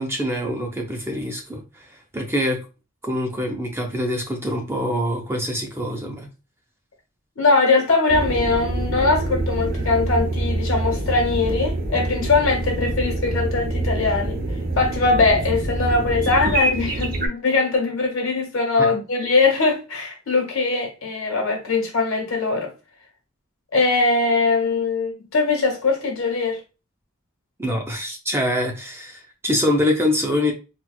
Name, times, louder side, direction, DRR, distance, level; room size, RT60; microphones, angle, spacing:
voice 1, 0.0-1.6 2.1-2.6 3.0-6.3 18.8-18.9 27.6-30.5, left 1 dB, 10° right, 0.5 m, -24 dB
voice 2, 7.3-22.7 23.7-26.6, left 3 dB, 70° left, 1.4 m, -21 dB
sound 1, 8.1-17.3, right 2 dB, 45° right, 0.7 m, -25 dB
4.2 x 2.3 x 2.3 m
head